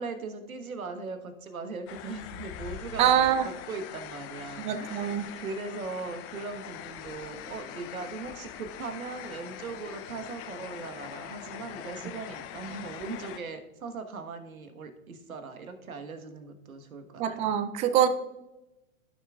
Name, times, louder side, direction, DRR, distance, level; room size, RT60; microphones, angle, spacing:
voice 1, 0.0-17.5, right 4 dB, 85° right, 7 dB, 1.3 m, -39 dB
sound 1, 1.9-13.4, left 9 dB, 35° left, 0.8 m, -42 dB
voice 2, 3.0-3.4 4.6-5.3 17.2-18.1, right 10 dB, 20° right, 12 dB, 0.3 m, -24 dB
15.0 x 6.2 x 2.3 m, 0.96 s
hypercardioid pair, 105°, 41 cm